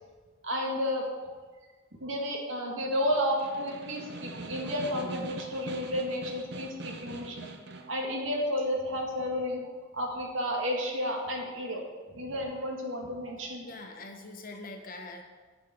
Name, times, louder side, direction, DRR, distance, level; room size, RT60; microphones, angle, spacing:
voice 1, 0.4-1.1 2.0-7.5 7.9-9.6 9.9-11.8 12.1-13.6, equal, 75° right, 0 dB, 2.1 m, -31 dB
Snare drum, 3.0-8.0, right 2 dB, 55° right, 0.8 m, -43 dB
voice 2, 13.6-15.2, left 2 dB, 45° left, 4 dB, 1.2 m, -43 dB
8.5 x 7.1 x 7.0 m, 1.4 s
head